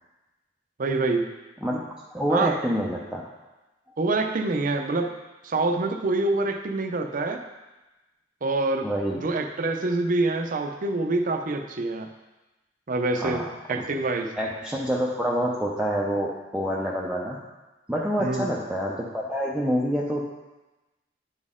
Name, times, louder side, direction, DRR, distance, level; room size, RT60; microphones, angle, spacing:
voice 1, 0.8-1.3 2.3-2.5 4.0-5.1 5.4-7.4 8.4-8.9 9.2-12.1 12.9-14.3 18.2-18.5, right 2 dB, 45° right, 5 dB, 0.6 m, -26 dB
voice 2, 2.1-3.3 8.8-9.3 13.2-13.8 14.4-17.4 17.9-20.2, equal, 5° right, -5 dB, 0.6 m, -27 dB
10.0 x 4.2 x 3.7 m, 1.1 s
head